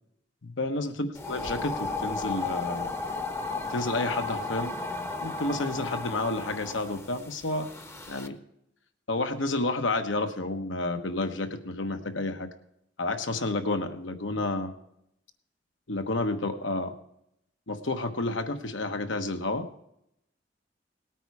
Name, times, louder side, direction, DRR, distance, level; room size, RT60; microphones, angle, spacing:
voice 1, 0.4-2.9 3.7-4.8 5.2-7.7 8.1-8.4 9.1-12.5 13.0-14.7 15.9-16.9 17.7-19.7, left 2 dB, 85° left, 7 dB, 1.2 m, -30 dB
sound 1, 1.1-8.3, left 3 dB, 15° left, 0.7 m, -34 dB
18.5 x 9.1 x 4.8 m, 0.79 s
head